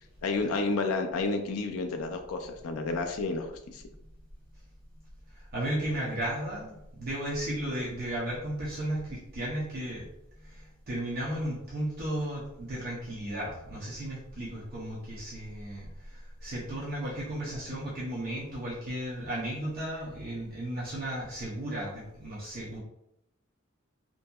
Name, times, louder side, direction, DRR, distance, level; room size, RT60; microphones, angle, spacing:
voice 1, 0.2-3.8, left 3 dB, 80° left, 5 dB, 0.4 m, -31 dB
voice 2, 5.3-10.1 10.4-22.8, right 1 dB, 45° right, -6 dB, 0.7 m, -35 dB
2.7 x 2.6 x 2.3 m, 0.82 s
head